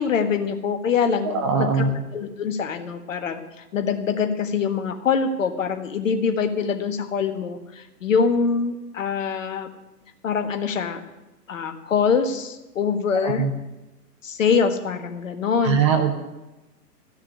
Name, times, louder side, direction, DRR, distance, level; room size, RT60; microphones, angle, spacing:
voice 1, 0.0-9.7 10.2-11.0 11.5-13.4 14.2-15.8, left 6 dB, 50° left, 7 dB, 1.6 m, -24 dB
voice 2, 1.3-1.9 13.2-13.5 15.6-16.1, right 6 dB, 20° right, 4 dB, 0.7 m, -21 dB
14.0 x 6.5 x 9.8 m, 1.0 s
figure-of-eight pair, 125°, 49 cm